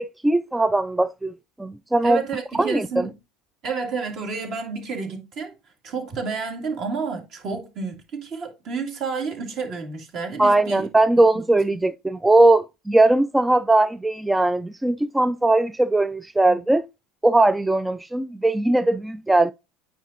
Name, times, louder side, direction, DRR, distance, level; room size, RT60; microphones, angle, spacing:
voice 1, 0.0-1.3 1.6-2.2 2.6-3.1 10.4-16.8 17.2-19.5, right 2 dB, 10° right, 0.3 m, -19 dB
voice 2, 2.0-3.1 3.6-5.5 5.8-10.9 11.3-11.4 16.4-16.6, right 5 dB, 50° right, 2.3 m, -30 dB
8.9 x 4.5 x 2.6 m
hypercardioid pair, 75°, 0 cm